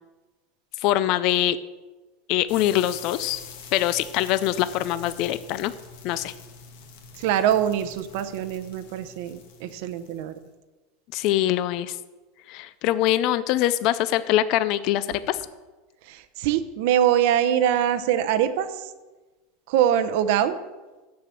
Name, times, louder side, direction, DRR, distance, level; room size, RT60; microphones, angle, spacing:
voice 1, 0.8-1.6 2.3-3.4 3.7-5.7 6.0-6.3 11.1-12.0 12.5-15.4, left 13 dB, 50° left, 15 dB, 0.4 m, -23 dB
sound 1, 2.5-10.4, left 5 dB, 75° left, 1.8 m, -45 dB
voice 2, 7.2-10.4 16.1-18.9 19.7-20.6, right 10 dB, 65° right, 12 dB, 0.8 m, -23 dB
6.9 x 6.7 x 7.6 m, 1.2 s
supercardioid pair, 140°, 0 cm